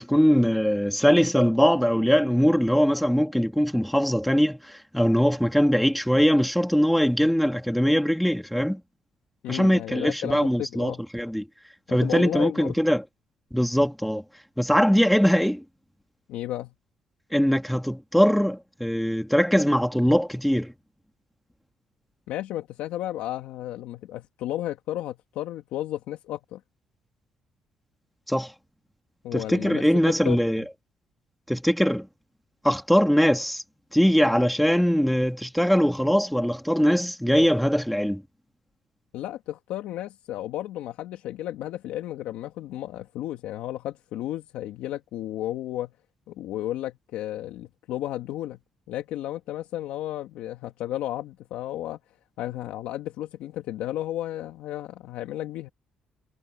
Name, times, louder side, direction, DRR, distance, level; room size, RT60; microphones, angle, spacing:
voice 1, 0.0-8.8 9.5-11.5 11.9-13.0 13.5-14.2 14.6-15.6 17.3-20.7 28.3-28.5 29.3-30.6 31.5-32.1 32.6-33.6 33.9-38.2, equal, ahead, 3.0 m, -21 dB
voice 2, 9.4-11.0 11.9-12.7 16.3-16.7 22.3-26.6 29.2-29.8 30.2-30.4 39.1-45.9 46.3-48.6 48.9-52.0 52.4-55.7, left 13 dB, 85° left, 1.8 m, -33 dB
cardioid pair, 85°, 2 cm